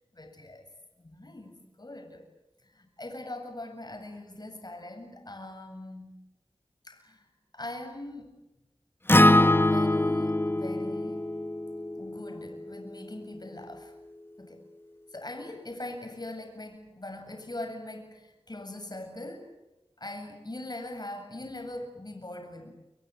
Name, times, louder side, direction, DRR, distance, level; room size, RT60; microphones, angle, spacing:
voice 1, 0.1-0.7 1.0-2.3 2.6-6.2 6.8-7.3 7.5-8.4 9.5-11.3 12.0-13.9 14.4-14.6 15.1-19.5 20.0-22.7, left 1 dB, 45° left, 6 dB, 7.7 m, -41 dB
Acoustic guitar, 9.1-13.3, left 1 dB, 20° left, 1.0 m, -24 dB
29.5 x 25.0 x 8.1 m, 0.98 s
wide cardioid pair, 55°, 10 cm